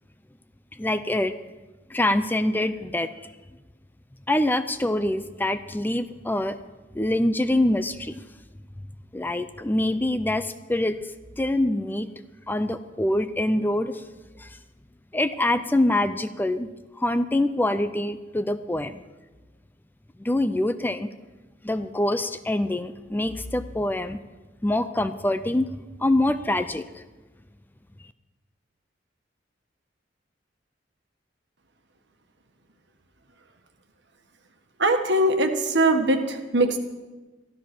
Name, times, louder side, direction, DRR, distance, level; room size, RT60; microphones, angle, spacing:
voice 1, 0.8-1.3 1.9-3.1 4.3-6.6 6.9-8.2 9.1-11.0 11.4-12.1 12.5-13.9 14.4-14.5 15.1-16.7 17.0-19.0 20.2-21.1 21.6-24.2 24.6-25.7 26.0-27.0, left 1 dB, 10° left, 11 dB, 0.5 m, -25 dB
voice 2, 34.8-36.8, right 1 dB, 65° right, 6 dB, 1.5 m, -21 dB
14.0 x 12.5 x 6.0 m, 1.2 s
head